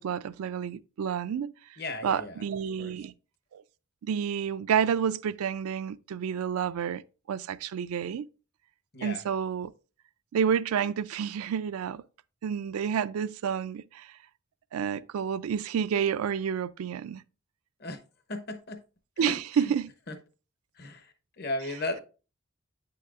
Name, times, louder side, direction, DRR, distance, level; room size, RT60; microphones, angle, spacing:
voice 1, 0.0-1.5 2.0-3.1 3.5-3.6 4.0-7.0 7.3-8.2 9.0-9.7 10.3-12.0 12.4-14.1 14.7-17.2 19.2-19.9, right 7 dB, 85° right, 0.3 m, -29 dB
voice 2, 1.8-2.4 2.8-3.0 8.9-9.3 17.8-18.0 18.3-18.8 19.2-19.7 20.1-20.2 20.7-22.0, left 2 dB, 50° left, 0.8 m, -36 dB
8.2 x 5.8 x 2.4 m
head